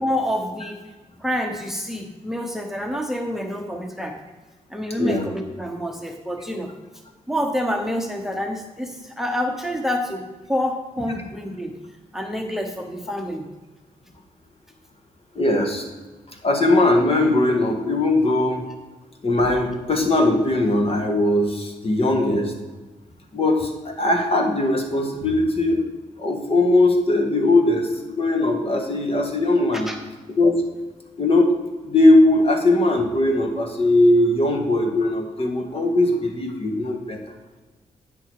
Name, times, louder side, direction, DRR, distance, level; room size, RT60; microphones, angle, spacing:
voice 1, 0.0-0.9 1.2-4.2 4.7-6.7 7.3-11.7 12.1-13.5 29.7-30.0, equal, 5° right, 4 dB, 1.0 m, -27 dB
voice 2, 15.4-15.8 16.4-18.6 19.2-22.5 23.3-25.8 26.2-29.9 30.3-30.7 31.2-37.2, left 2 dB, 45° left, 3 dB, 1.8 m, -19 dB
10.0 x 5.9 x 4.8 m, 1.2 s
cardioid pair, 65°, 14 cm